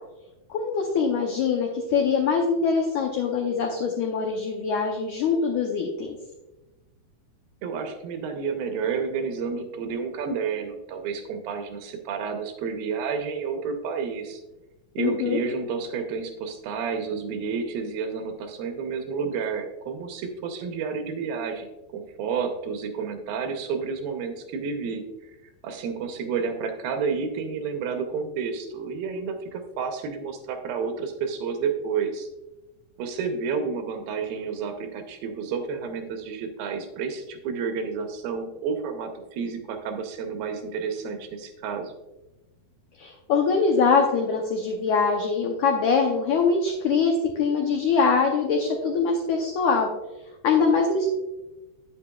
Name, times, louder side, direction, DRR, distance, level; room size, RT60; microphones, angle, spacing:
voice 1, 0.5-6.2 15.0-15.4 43.0-49.9 50.4-51.1, left 5 dB, 85° left, 2 dB, 1.7 m, -23 dB
voice 2, 7.6-14.4 15.0-25.3 25.6-32.3 33.0-41.9, right 5 dB, 75° right, 5 dB, 2.5 m, -30 dB
9.0 x 8.8 x 2.3 m, 1.0 s
omnidirectional pair, 4.5 m